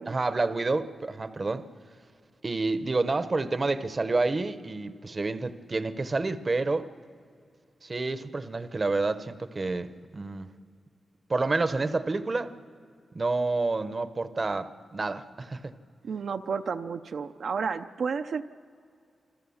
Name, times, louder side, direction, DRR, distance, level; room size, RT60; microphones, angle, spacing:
voice 1, 0.1-1.7 2.4-6.9 7.8-10.5 11.3-12.5 13.1-15.7, right 3 dB, 30° right, 0.7 m, -29 dB
voice 2, 16.0-18.5, right 5 dB, 65° right, 0.5 m, -31 dB
27.5 x 25.0 x 7.1 m
wide cardioid pair, 170°, 0 cm